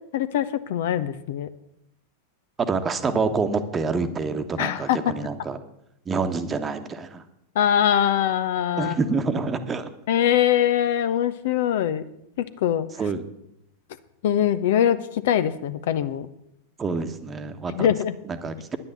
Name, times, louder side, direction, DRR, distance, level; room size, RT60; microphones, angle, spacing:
voice 1, 0.1-1.5 4.6-5.0 7.6-8.9 10.1-12.0 12.4-12.9 14.2-15.0 15.2-16.3 17.7-18.1, left 10 dB, 55° left, 13 dB, 0.7 m, -22 dB
voice 2, 2.6-5.6 6.1-7.2 8.8-9.9 13.0-13.2 16.8-17.9 18.2-18.8, right 4 dB, 20° right, 8 dB, 1.2 m, -27 dB
10.5 x 9.9 x 7.0 m, 0.79 s
figure-of-eight pair, 90°, 0 cm